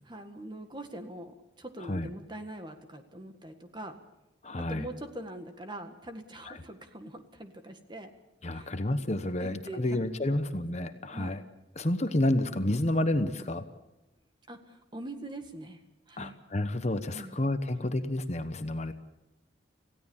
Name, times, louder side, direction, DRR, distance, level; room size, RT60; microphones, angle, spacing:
voice 1, 0.1-4.0 4.6-8.1 8.5-8.7 9.4-10.4 11.1-11.4 14.5-15.8 16.1-16.4 17.1-17.4, right 1 dB, 25° right, 6 dB, 1.7 m, -43 dB
voice 2, 4.4-4.9 6.5-6.6 8.4-11.4 11.8-13.6 16.2-18.9, left 1 dB, 35° left, 9 dB, 1.0 m, -30 dB
27.0 x 16.5 x 7.2 m, 0.96 s
head